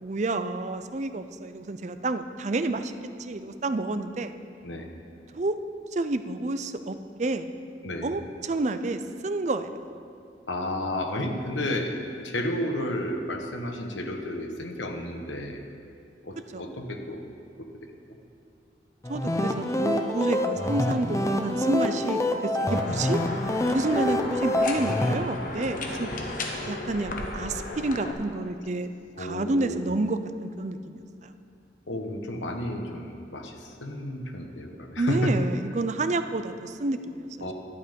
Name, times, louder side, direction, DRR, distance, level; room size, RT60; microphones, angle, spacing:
voice 1, 0.0-4.3 5.3-5.6 5.9-7.5 8.0-9.7 16.5-16.6 19.1-23.2 23.7-26.1 26.6-28.9 29.2-31.0 35.0-37.5, right 2 dB, 40° right, 10 dB, 0.5 m, -29 dB
voice 2, 10.5-12.0 12.2-15.6 16.2-17.2 17.6-17.9 23.9-24.0 29.2-29.8 31.9-35.3 37.4-37.5, left 1 dB, 85° left, 4 dB, 1.2 m, -32 dB
sound 1, 19.0-25.2, left 1 dB, 15° left, 0.6 m, -26 dB
sound 2, 22.7-28.1, left 2 dB, 45° left, 1.1 m, -35 dB
11.0 x 10.0 x 5.3 m, 2.4 s
head